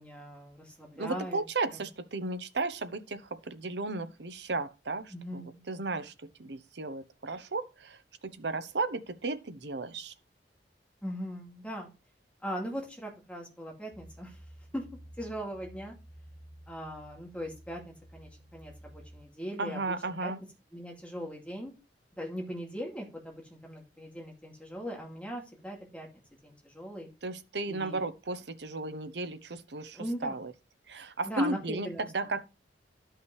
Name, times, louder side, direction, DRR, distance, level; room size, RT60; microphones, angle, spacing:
voice 1, 0.0-1.4 1.7-1.8 5.1-5.6 11.0-11.9 12.4-14.4 14.7-14.8 15.2-15.9 16.7-19.8 20.2-20.3 20.7-21.7 22.2-26.1 26.4-27.1 27.7-28.0 29.9-30.4 31.2-32.3, equal, 5° left, 2.4 m, -40 dB
voice 2, 1.0-10.1 19.6-20.4 27.2-30.5 30.9-32.4, right 3 dB, 70° right, 0.9 m, -35 dB
sound 1, 13.9-19.3, equal, 35° right, 3.0 m, -52 dB
12.5 x 5.7 x 3.2 m
head